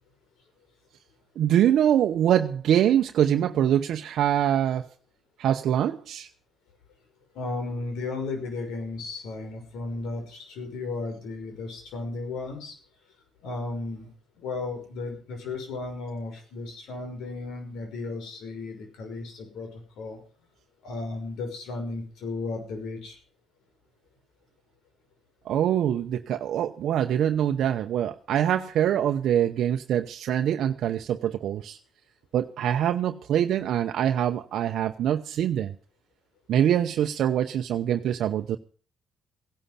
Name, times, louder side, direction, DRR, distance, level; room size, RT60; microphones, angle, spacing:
voice 1, 1.4-4.9 5.4-6.3 25.5-31.8 32.3-35.7 36.5-38.6, right 10 dB, 75° right, 6 dB, 0.8 m, -24 dB
voice 2, 7.3-12.8 13.4-14.1 14.4-20.2 20.8-23.2, left 3 dB, 85° left, 4 dB, 6.0 m, -34 dB
16.5 x 11.5 x 5.7 m, 0.41 s
cardioid pair, 90°, 0 cm